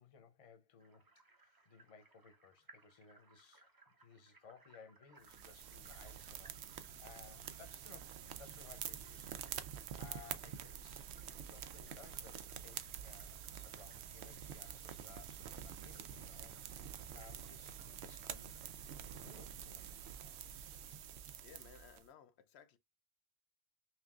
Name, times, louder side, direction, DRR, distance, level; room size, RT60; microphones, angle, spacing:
voice 1, 0.0-3.7 4.0-11.1 11.5-16.5 17.1-18.8 19.1-19.9, left 6 dB, 40° left, 0.7 m, -60 dB
sound 1, 0.8-20.0, right 3 dB, 25° right, 0.6 m, -68 dB
sound 2, 5.2-22.0, right 9 dB, 90° right, 0.8 m, -48 dB
voice 2, 21.3-22.8, left 8 dB, 85° left, 0.9 m, -60 dB
5.7 x 2.5 x 2.4 m
omnidirectional pair, 1.1 m